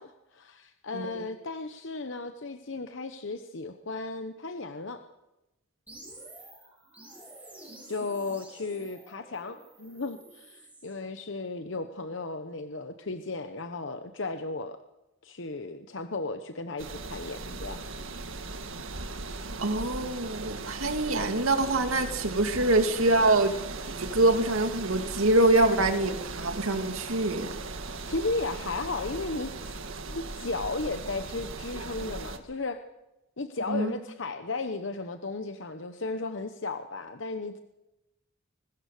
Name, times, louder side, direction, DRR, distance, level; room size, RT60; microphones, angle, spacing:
voice 1, 0.0-5.1 7.9-14.8 15.2-17.8 28.1-29.7 30.1-32.8 33.4-37.6, left 3 dB, 60° left, 8 dB, 1.0 m, -35 dB
sound 1, 5.9-11.0, right 2 dB, 5° right, 6.3 m, -50 dB
sound 2, 16.8-32.4, right 3 dB, 75° right, 1.7 m, -38 dB
voice 2, 19.6-23.5 24.0-27.6 33.7-33.9, right 2 dB, 90° right, 6 dB, 2.4 m, -25 dB
22.0 x 19.5 x 6.7 m, 0.99 s
head